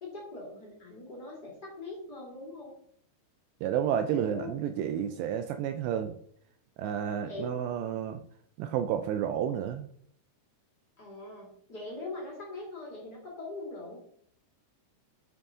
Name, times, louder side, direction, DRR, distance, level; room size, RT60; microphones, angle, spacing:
voice 1, 0.0-2.7 4.1-4.6 5.1-5.2 7.2-7.5 11.0-14.0, left 2 dB, 30° left, -3 dB, 1.9 m, -42 dB
voice 2, 3.6-6.2 6.8-8.2 8.6-9.9, right 9 dB, 85° right, 8 dB, 2.5 m, -31 dB
9.3 x 5.6 x 3.6 m, 0.65 s
omnidirectional pair, 5.2 m